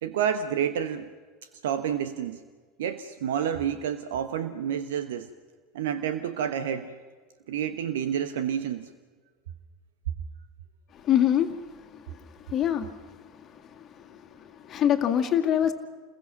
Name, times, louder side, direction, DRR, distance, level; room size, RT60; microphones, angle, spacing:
voice 1, 0.0-1.1 1.6-2.4 2.8-5.3 5.7-6.9 7.5-8.9, right 9 dB, 65° right, 10 dB, 1.1 m, -29 dB
voice 2, 10.9-15.7, left 10 dB, 35° left, 5 dB, 2.1 m, -27 dB
30.0 x 22.0 x 5.9 m, 1.5 s
figure-of-eight pair, 75°, 0 cm